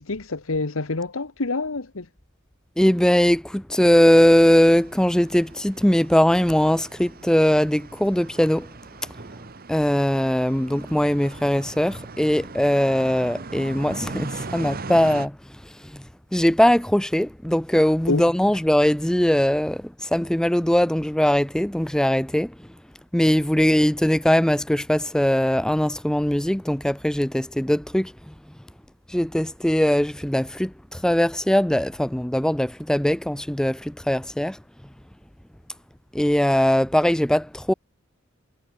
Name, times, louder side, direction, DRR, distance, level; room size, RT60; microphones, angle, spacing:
voice 1, 0.0-2.1 18.1-18.2, left 3 dB, 80° left, 1.4 m, -27 dB
voice 2, 2.8-8.7 9.7-15.4 15.8-16.0 16.3-22.5 23.1-28.3 29.1-34.6 36.1-37.7, equal, 5° left, 0.4 m, -20 dB
sound 1, 3.8-15.3, right 3 dB, 45° right, 1.2 m, -39 dB
head